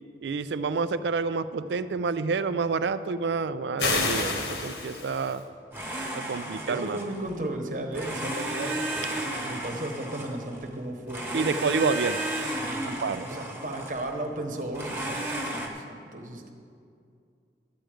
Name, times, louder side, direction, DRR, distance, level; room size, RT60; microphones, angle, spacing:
voice 1, 0.2-5.4 6.1-7.0 11.3-12.2 13.0-13.2, right 4 dB, 85° right, 13 dB, 0.4 m, -28 dB
sound 1, 3.8-5.4, left 3 dB, 75° left, 1.4 m, -29 dB
Domestic sounds home sounds, 5.7-7.4 7.9-10.7 11.1-14.1 14.7-15.7, right 1 dB, 10° right, 1.0 m, -33 dB
voice 2, 6.7-11.5 12.4-16.5, right 1 dB, 45° right, 3 dB, 1.1 m, -35 dB
12.5 x 9.0 x 5.0 m, 2.4 s
head